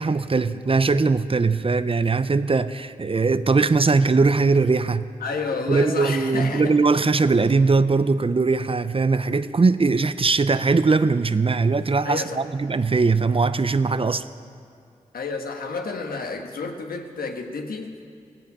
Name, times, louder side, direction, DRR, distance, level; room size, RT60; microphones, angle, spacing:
voice 1, 0.0-5.1 5.7-14.2, right 4 dB, 40° right, 13 dB, 0.6 m, -20 dB
voice 2, 5.2-6.7 12.0-12.4 15.1-17.9, left 4 dB, 85° left, 4 dB, 1.4 m, -30 dB
16.5 x 16.0 x 5.5 m, 2.3 s
cardioid pair, 40°, 15 cm